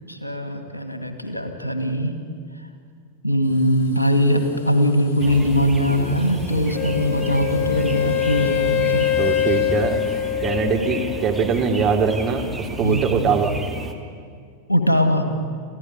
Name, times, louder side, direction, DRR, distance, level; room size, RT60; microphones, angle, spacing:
voice 1, 0.1-2.2 3.2-9.1 12.8-13.0 14.7-15.3, equal, 85° left, 6 dB, 2.2 m, -21 dB
sound 1, 3.4-10.3, left 4 dB, 65° left, 7.9 m, -49 dB
sound 2, 5.2-13.9, right 3 dB, 5° right, 2.4 m, -33 dB
Wind instrument woodwind instrument, 6.7-11.6, left 12 dB, 35° left, 0.8 m, -24 dB
voice 2, 9.2-10.0 10.4-13.5, right 6 dB, 35° right, 3 dB, 2.7 m, -22 dB
26.5 x 15.5 x 9.6 m, 2.1 s
figure-of-eight pair, 90°, 0 cm